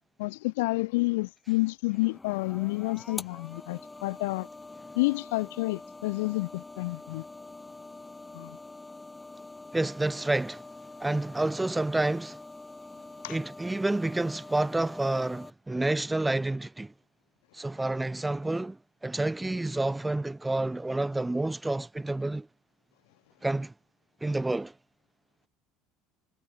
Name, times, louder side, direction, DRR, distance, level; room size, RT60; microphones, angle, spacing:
voice 1, 0.2-4.5 4.9-7.2 8.3-8.6 13.2-13.4, left 23 dB, 65° left, 1.2 m, -29 dB
sound 1, 1.9-15.5, left 2 dB, 10° left, 6.6 m, -45 dB
voice 2, 9.7-10.7 11.0-12.4 13.3-16.9 17.5-22.5 23.4-23.7 24.2-24.7, right 2 dB, 10° right, 0.6 m, -29 dB
figure-of-eight pair, 65°, 0 cm